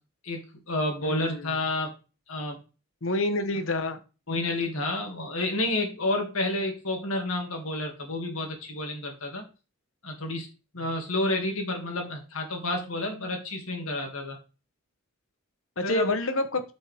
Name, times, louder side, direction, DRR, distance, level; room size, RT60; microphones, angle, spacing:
voice 1, 0.2-1.9 2.3-2.6 4.3-9.5 10.0-10.5 10.7-14.4 15.8-16.1, left 2 dB, 90° left, 3 dB, 2.3 m, -30 dB
voice 2, 1.0-1.6 3.0-4.0 15.8-16.6, left 2 dB, 75° left, 9 dB, 1.0 m, -28 dB
8.5 x 5.4 x 3.5 m, 0.32 s
head